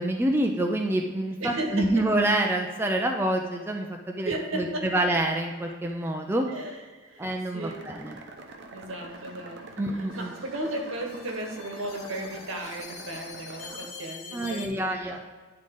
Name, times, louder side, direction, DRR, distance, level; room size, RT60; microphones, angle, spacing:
voice 1, 0.0-6.5 7.2-8.2 9.8-10.3 14.3-15.2, right 1 dB, 10° right, 2 dB, 0.4 m, -27 dB
voice 2, 1.4-2.0 4.2-5.1 6.5-7.9 8.7-9.6 9.9-15.2, right 1 dB, 70° right, 2 dB, 1.2 m, -35 dB
sound 1, 7.6-13.9, right 3 dB, 55° right, 0.8 m, -45 dB
sound 2, 9.1-14.7, left 5 dB, 85° left, 1.4 m, -46 dB
10.0 x 3.8 x 3.7 m, 1.4 s
head